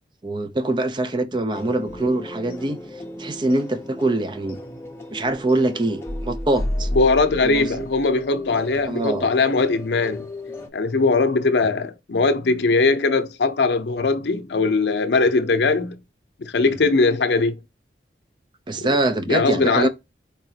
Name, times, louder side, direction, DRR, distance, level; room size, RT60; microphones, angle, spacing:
voice 1, 0.2-2.8 3.2-4.6 5.1-6.9 7.4-7.9 8.9-9.3 16.6-16.7 18.7-19.9, right 2 dB, 25° right, 0.4 m, -24 dB
sound 1, 1.5-10.7, left 1 dB, 15° left, 0.7 m, -33 dB
voice 2, 6.9-10.3 10.7-16.0 16.4-17.6 18.7-19.0 19.3-19.9, left 3 dB, 80° left, 0.6 m, -20 dB
4.8 x 2.8 x 2.8 m
head